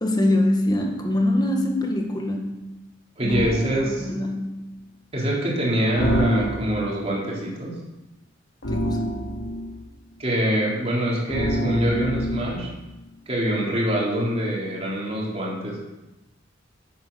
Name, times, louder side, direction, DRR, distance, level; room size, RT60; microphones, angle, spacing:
voice 1, 0.0-2.7 3.2-3.4 3.8-4.7 8.7-9.0, left 1 dB, 20° left, 2 dB, 1.7 m, -24 dB
voice 2, 3.2-4.1 5.1-7.7 10.2-12.7 13.3-15.8, right 1 dB, 30° right, -4 dB, 3.6 m, -25 dB
sound 1, 3.3-3.7 6.0-6.9 8.6-9.7 11.3-12.7, equal, 85° left, 2.5 m, -26 dB
9.6 x 9.4 x 7.1 m, 1.0 s
head